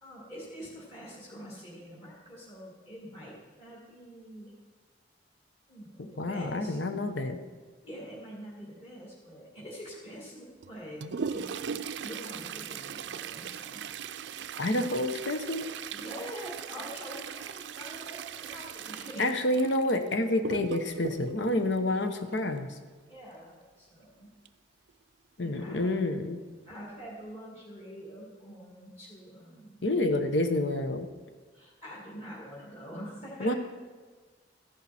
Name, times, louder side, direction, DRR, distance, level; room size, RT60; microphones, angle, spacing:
voice 1, 0.0-4.5 5.7-6.8 7.8-11.0 11.3-13.8 15.9-19.3 23.1-24.3 25.4-25.9 26.6-29.8 31.5-33.5, equal, 35° left, -5 dB, 2.4 m, -45 dB
voice 2, 6.0-7.4 14.6-15.7 19.2-22.8 25.4-26.4 29.8-31.1 33.4-33.5, left 1 dB, 80° left, 8 dB, 1.1 m, -28 dB
Toilet flush, 10.6-22.6 24.4-24.5 24.9-25.0 25.8-25.9 26.5-26.8 27.2-27.4, right 7 dB, 75° right, 0.4 m, -39 dB
14.0 x 10.5 x 4.3 m, 1.4 s
head